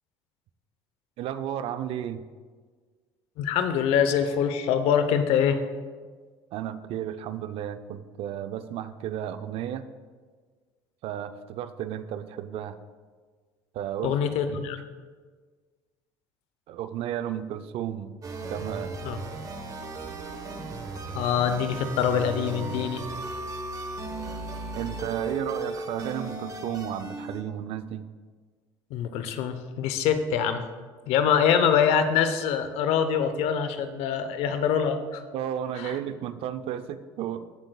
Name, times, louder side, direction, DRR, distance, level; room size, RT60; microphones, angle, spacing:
voice 1, 1.2-2.2 6.5-9.9 11.0-12.8 13.7-14.2 14.5-14.6 16.7-18.2 18.5-19.0 24.7-28.1 34.5-34.6 35.3-37.5, right 10 dB, 65° right, 12 dB, 0.5 m, -33 dB
voice 2, 3.4-5.6 14.0-14.8 19.0-19.2 21.1-23.0 28.9-30.6 31.1-35.2 35.8-35.9, left 8 dB, 70° left, 9 dB, 0.8 m, -24 dB
sound 1, 18.2-27.4, right 3 dB, 35° right, 1.1 m, -36 dB
14.5 x 7.6 x 2.3 m, 1.5 s
supercardioid pair, 85°, 11 cm